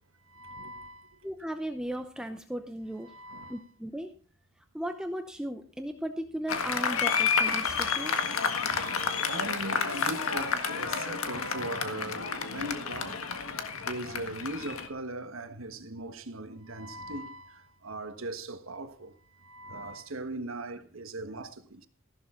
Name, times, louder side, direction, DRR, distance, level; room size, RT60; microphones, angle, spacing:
voice 1, 0.3-1.2 3.0-3.6 8.5-13.3 13.9-21.9, right 2 dB, 75° right, 1.4 m, -40 dB
voice 2, 1.2-3.1 3.5-4.1 4.7-8.1, right 1 dB, 5° right, 0.7 m, -36 dB
Applause, 6.5-14.9, left 5 dB, 85° left, 1.7 m, -30 dB
15.0 x 11.5 x 3.8 m
head